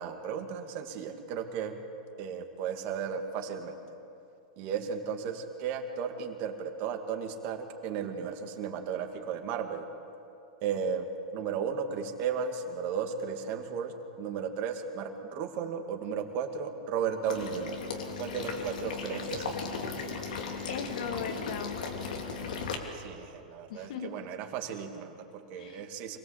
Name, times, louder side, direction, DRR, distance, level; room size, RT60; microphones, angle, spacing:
voice 1, 0.0-1.8 2.2-3.8 4.6-9.9 10.6-11.1 11.3-17.8 18.2-19.6 22.9-26.2, right 7 dB, 45° right, 4 dB, 2.5 m, -35 dB
Water / Liquid, 17.3-22.7, left 5 dB, 85° left, 3.1 m, -36 dB
voice 2, 20.7-22.0 23.7-24.3 25.5-25.9, left 6 dB, 70° left, 6 dB, 2.2 m, -38 dB
26.0 x 18.0 x 8.4 m, 2.6 s
hypercardioid pair, 130°, 4 cm